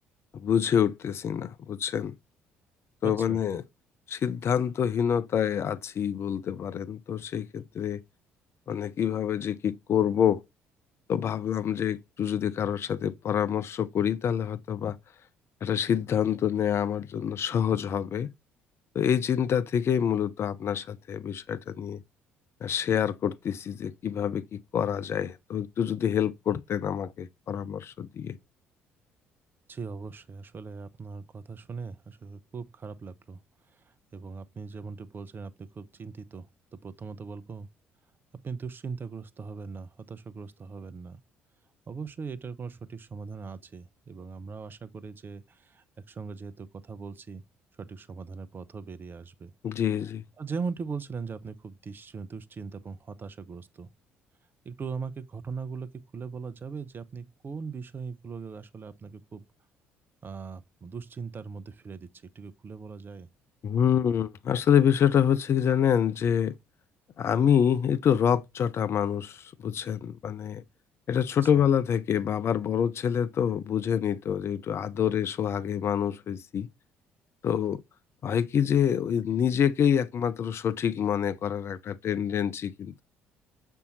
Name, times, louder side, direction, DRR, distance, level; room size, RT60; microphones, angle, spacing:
voice 1, 0.3-2.1 3.0-3.6 4.1-8.0 8.7-10.4 11.1-15.0 15.6-18.3 18.9-22.0 22.6-28.4 49.6-50.2 63.6-66.5 67.2-70.6 71.1-76.7 77.4-77.8 78.2-83.0, left 8 dB, 45° left, 0.5 m, -26 dB
voice 2, 3.0-3.4 29.7-33.4 33.7-36.5 36.7-37.7 38.4-41.2 41.9-47.4 47.8-49.5 50.4-53.9 54.6-59.4 60.2-62.1 62.3-63.3 71.4-71.6, right 5 dB, 35° right, 0.8 m, -39 dB
7.0 x 4.6 x 4.0 m
figure-of-eight pair, 50°, 6 cm